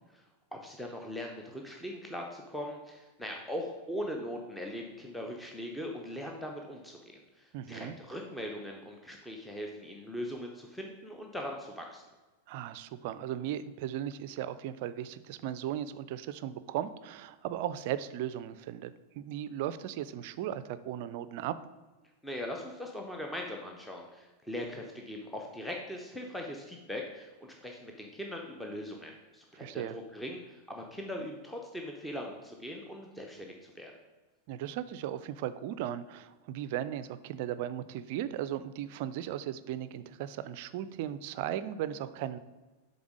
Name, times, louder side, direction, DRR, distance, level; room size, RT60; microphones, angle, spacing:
voice 1, 0.5-12.0 22.2-33.9, left 1 dB, 5° left, 1 dB, 0.7 m, -40 dB
voice 2, 7.5-7.9 12.5-21.5 29.5-30.0 34.5-42.4, right 11 dB, 50° right, 14 dB, 0.3 m, -37 dB
7.0 x 3.9 x 4.9 m, 1.2 s
figure-of-eight pair, 90°, 0 cm